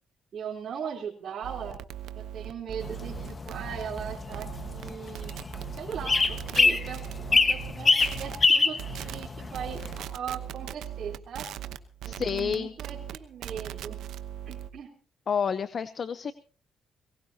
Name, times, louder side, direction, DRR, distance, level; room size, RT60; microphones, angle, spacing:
voice 1, 0.3-1.8 2.1-5.3 5.8-11.5 12.1-14.0 14.5-14.9, right 7 dB, 55° right, -4 dB, 3.7 m, -39 dB
sound 1, 1.4-7.7 8.0-8.4 8.8-9.3 9.5-14.7, right 11 dB, 80° right, 1.0 m, -39 dB
sound 2, 2.8-10.0, left 4 dB, 30° left, 1.5 m, -26 dB
voice 2, 12.1-12.7 15.3-16.3, left 6 dB, 50° left, 13 dB, 0.8 m, -29 dB
22.5 x 19.0 x 2.9 m, 0.39 s
cardioid pair, 90°, 0 cm